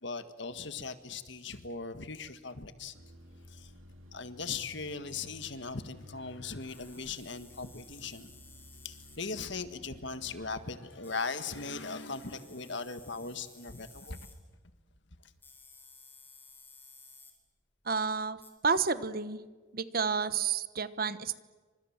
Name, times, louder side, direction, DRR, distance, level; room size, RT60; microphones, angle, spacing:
voice 1, 0.0-2.9 3.5-3.7 4.1-8.3 8.8-14.2, left 4 dB, 60° left, 11 dB, 1.7 m, -39 dB
sound 1, 2.9-10.7, left 1 dB, 80° right, 2.6 m, -54 dB
sound 2, 6.7-9.2 9.6-9.7 11.0-14.4 15.4-17.3 18.4-18.5, left 3 dB, 10° left, 3.8 m, -56 dB
voice 2, 17.8-18.4 18.6-19.4 19.7-21.4, right 5 dB, 45° right, 14 dB, 1.1 m, -30 dB
29.0 x 26.0 x 7.4 m, 1.4 s
head